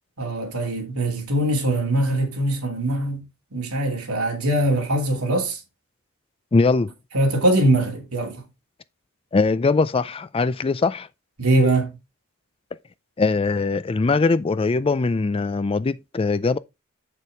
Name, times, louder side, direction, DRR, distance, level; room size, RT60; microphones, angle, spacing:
voice 1, 0.2-3.2 3.5-5.6 7.1-8.4 11.4-11.9, right 1 dB, 90° right, 2.7 m, -22 dB
voice 2, 6.5-6.9 9.3-11.1 13.2-16.6, left 4 dB, 25° left, 0.4 m, -21 dB
8.1 x 6.7 x 3.5 m
head